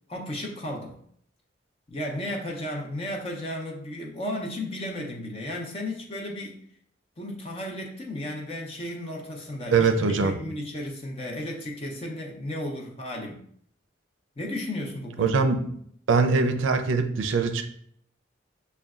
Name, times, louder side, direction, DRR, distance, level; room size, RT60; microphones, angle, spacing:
voice 1, 0.1-1.0 1.9-6.6 7.2-13.4 14.4-15.4, left 1 dB, 30° left, 0 dB, 0.6 m, -34 dB
voice 2, 9.7-10.4 15.2-15.8 16.1-17.6, right 4 dB, 85° right, 7 dB, 0.4 m, -22 dB
6.4 x 2.2 x 2.4 m, 0.64 s
head